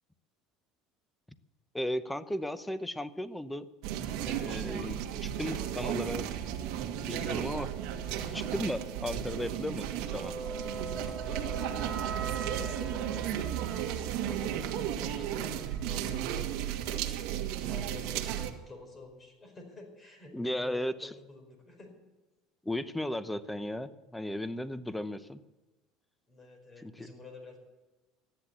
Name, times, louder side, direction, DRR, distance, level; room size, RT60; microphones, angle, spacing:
voice 1, 1.7-3.7 4.2-6.3 7.1-7.7 8.3-10.3 11.3-11.4 20.3-21.1 22.6-25.4 26.8-27.1, left 1 dB, 5° left, 13 dB, 0.8 m, -35 dB
sound 1, 3.8-18.5, right 10 dB, 70° right, 1.8 m, -34 dB
sound 2, 4.3-15.6, right 4 dB, 25° right, 2.2 m, -45 dB
voice 2, 11.0-13.8 14.1-21.9 26.3-27.6, left 3 dB, 25° left, 3 dB, 5.0 m, -49 dB
14.0 x 10.5 x 8.4 m, 1.1 s
supercardioid pair, 130°, 0 cm